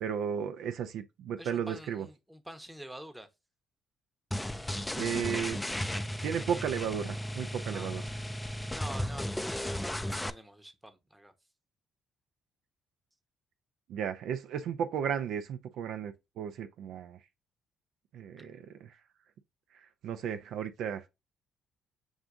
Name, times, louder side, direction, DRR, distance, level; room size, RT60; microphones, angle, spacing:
voice 1, 0.0-2.1 4.9-5.6 6.2-8.0 13.9-17.2 18.1-19.0 19.7-21.1, right 8 dB, 70° right, 0.3 m, -34 dB
voice 2, 1.4-3.3 7.6-7.9 8.7-11.3 18.4-18.5, right 1 dB, 10° right, 0.8 m, -46 dB
sound 1, 4.3-10.3, equal, 10° left, 0.4 m, -35 dB
7.0 x 2.5 x 2.4 m
hypercardioid pair, 55°, 0 cm